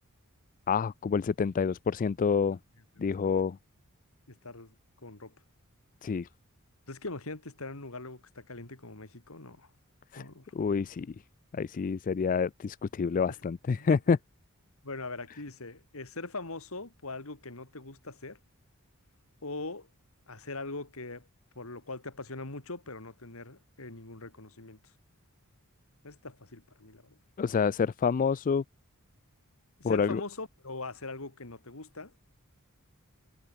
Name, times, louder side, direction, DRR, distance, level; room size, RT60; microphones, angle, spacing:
voice 1, 0.7-2.6 3.0-3.6 6.0-6.3 10.1-10.2 10.5-11.1 11.5-14.2 27.4-28.6 29.8-30.2, left 5 dB, 35° left, 0.3 m, -28 dB
voice 2, 3.0-3.3 4.3-4.7 5.0-5.3 6.9-9.7 10.2-10.5 13.3-13.4 13.7-14.0 14.8-18.4 19.4-19.9 20.3-21.3 21.5-24.8 26.0-27.2 29.8-32.1, left 3 dB, 65° left, 2.7 m, -42 dB
head